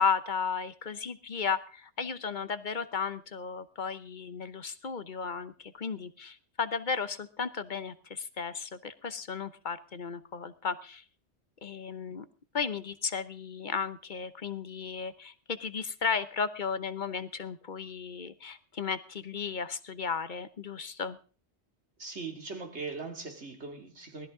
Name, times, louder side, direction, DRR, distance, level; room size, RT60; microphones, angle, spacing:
voice 1, 0.0-11.0 11.6-12.3 12.5-21.2, left 5 dB, 50° left, 1.0 m, -34 dB
voice 2, 22.0-24.3, right 4 dB, 80° right, 2.8 m, -40 dB
19.5 x 13.5 x 3.7 m
omnidirectional pair, 1.1 m